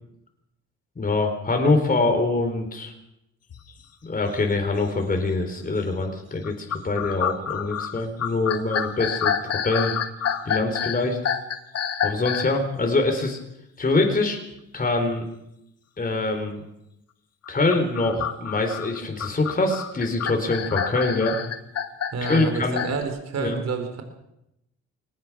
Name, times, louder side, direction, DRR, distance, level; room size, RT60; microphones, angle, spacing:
voice 1, 1.0-2.9 4.0-9.9 10.5-11.2 12.0-13.4 13.8-14.4 14.7-15.2 16.0-16.6 17.5-21.4 22.3-22.9 23.4-23.6, left 3 dB, 30° left, 4 dB, 4.1 m, -24 dB
sound 1, 3.5-3.7 4.3-4.4 5.0-5.3 6.4-12.6 17.4-23.0, left 8 dB, 55° left, 1.9 m, -28 dB
voice 2, 22.1-24.0, right 5 dB, 60° right, 6 dB, 4.5 m, -29 dB
23.0 x 19.5 x 6.2 m, 0.84 s
cardioid pair, 90°, 30 cm